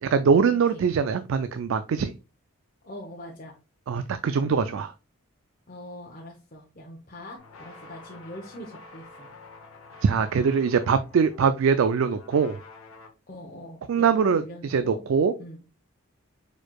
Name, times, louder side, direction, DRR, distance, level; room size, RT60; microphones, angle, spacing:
voice 1, 0.0-2.1 3.9-4.9 10.0-12.6 13.9-15.3, right 6 dB, 65° right, 11 dB, 0.3 m, -22 dB
voice 2, 2.8-3.6 5.7-9.3 13.3-15.0 15.4-15.6, equal, 40° left, -2 dB, 0.8 m, -42 dB
sound 1, 7.4-13.1, left 3 dB, 75° left, 0.9 m, -48 dB
4.5 x 4.5 x 2.3 m, 0.29 s
head